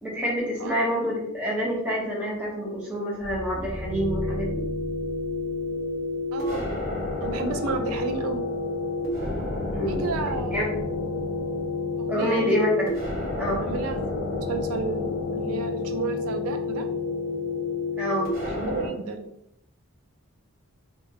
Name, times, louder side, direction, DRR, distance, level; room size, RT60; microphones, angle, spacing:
voice 1, 0.0-4.6 9.7-10.0 10.5-10.7 12.1-12.9 13.4-13.6 18.0-18.3, equal, 5° right, -5 dB, 0.7 m, -27 dB
sound 1, 3.2-18.9, left 3 dB, 40° right, 1.1 m, -30 dB
voice 2, 6.3-6.6 7.2-8.4 9.9-10.5 12.0-12.6 13.4-14.0 14.4-16.9 18.4-19.2, right 4 dB, 80° right, 5 dB, 0.4 m, -32 dB
2.8 x 2.3 x 2.7 m, 0.77 s
head